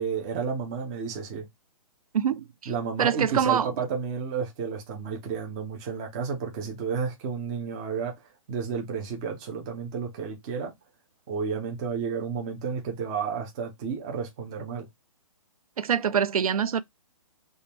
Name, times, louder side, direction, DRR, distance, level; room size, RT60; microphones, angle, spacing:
voice 1, 0.0-1.5 2.7-8.1 8.5-10.7 11.3-14.9, right 6 dB, 10° right, 0.3 m, -31 dB
voice 2, 2.1-2.4 3.0-3.7 15.8-16.8, right 8 dB, 80° right, 0.5 m, -24 dB
3.5 x 2.1 x 4.0 m
hypercardioid pair, 165°, 18 cm